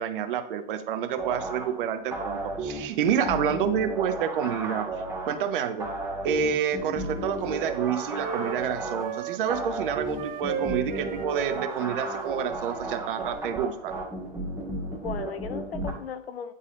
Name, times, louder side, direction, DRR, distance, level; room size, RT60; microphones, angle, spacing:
voice 1, 0.0-4.9 5.2-5.9 6.2-13.9, right 8 dB, 60° right, 9 dB, 0.8 m, -28 dB
sound 1, 1.2-15.9, right 2 dB, 10° right, 1.6 m, -34 dB
Wind instrument woodwind instrument, 6.5-9.6 10.1-13.5, right 7 dB, 30° right, 0.7 m, -37 dB
voice 2, 14.9-16.5, left 7 dB, 85° left, 12 dB, 0.7 m, -37 dB
9.8 x 4.0 x 2.6 m, 0.73 s
hypercardioid pair, 110°, 29 cm